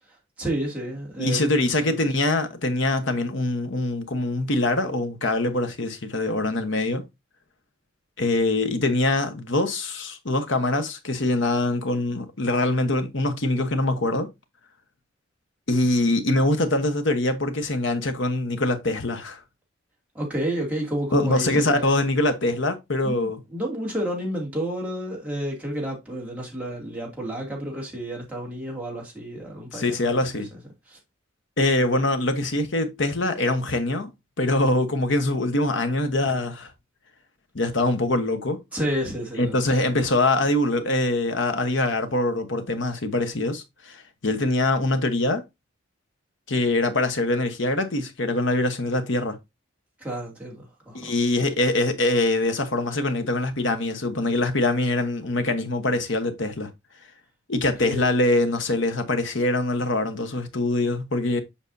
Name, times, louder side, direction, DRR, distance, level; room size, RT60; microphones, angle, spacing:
voice 1, 0.4-2.0 20.1-21.9 23.0-30.0 30.3-30.4 30.9-31.0 38.7-39.6 50.0-51.1 57.8-58.1, right 1 dB, 5° right, 2.5 m, -30 dB
voice 2, 1.2-7.0 8.2-14.3 15.7-19.4 21.1-23.4 29.7-30.5 31.6-34.1 34.4-36.7 37.5-38.6 39.4-45.4 46.5-49.4 50.9-56.7 57.5-61.4, left 2 dB, 60° left, 1.1 m, -23 dB
7.2 x 5.2 x 2.7 m
head